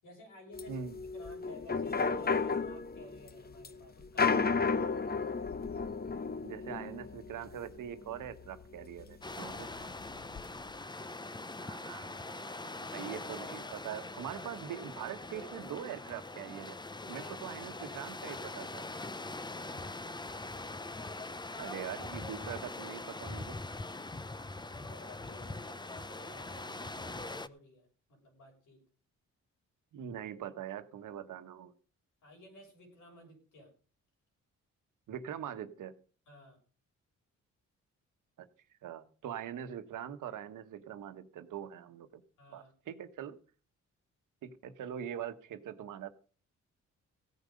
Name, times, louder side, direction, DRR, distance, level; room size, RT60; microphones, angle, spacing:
voice 1, 0.0-0.9 1.1-4.8 9.4-9.6 17.1-17.5 19.1-19.9 24.7-28.8 32.2-33.7 36.3-36.6 42.4-42.7, left 1 dB, 85° left, 2 dB, 6.8 m, -55 dB
sound 1, 0.5-9.1 9.5-9.6 9.8-10.4, left 5 dB, 30° left, 1.0 m, -33 dB
voice 2, 0.7-1.0 6.4-9.7 11.6-16.8 17.1-18.8 21.6-23.6 29.9-31.7 35.1-35.9 38.4-38.5 38.8-42.2 42.5-43.3 44.4-46.1, right 9 dB, 80° right, 10 dB, 1.3 m, -43 dB
sound 2, 9.2-27.5, left 2 dB, 15° left, 0.7 m, -42 dB
16.0 x 9.4 x 5.2 m, 0.39 s
cardioid pair, 80°, 31 cm